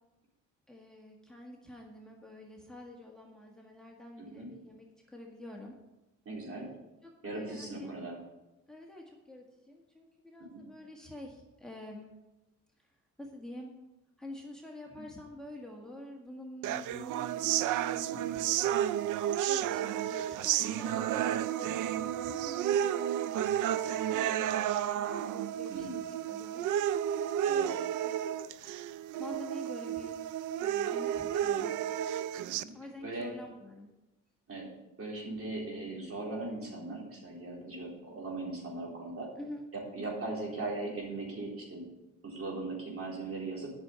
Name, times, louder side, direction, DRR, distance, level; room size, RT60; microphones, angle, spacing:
voice 1, 0.7-5.8 7.0-8.0 8.7-12.1 12.8-12.9 13.2-13.7 14.2-19.0 19.4-22.9 23.7-28.2 29.2-30.2 30.6-31.7 32.7-33.9 39.4-39.7, left 1 dB, ahead, 0 dB, 1.7 m, -48 dB
voice 2, 4.2-4.5 6.3-6.7 7.2-8.2 10.4-10.6 18.1-18.3 25.7-26.0 27.4-27.8 31.5-31.7 32.6-32.7 33.0-33.3 34.5-34.7 35.0-39.3 39.9-41.8 42.2-43.7, right 2 dB, 50° right, -2 dB, 4.0 m, -39 dB
sound 1, 16.6-32.6, right 11 dB, 85° right, 0.5 m, -32 dB
8.8 x 6.3 x 8.1 m, 1.0 s
cardioid pair, 90°, 30 cm